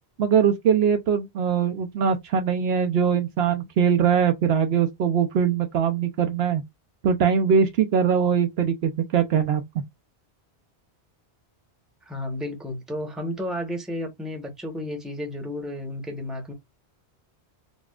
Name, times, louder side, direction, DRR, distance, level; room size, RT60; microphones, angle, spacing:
voice 1, 0.2-6.6 7.0-9.8, right 7 dB, 70° right, 0.8 m, -22 dB
voice 2, 12.1-16.5, left 1 dB, ahead, 0.8 m, -32 dB
4.1 x 2.3 x 2.3 m
omnidirectional pair, 1.1 m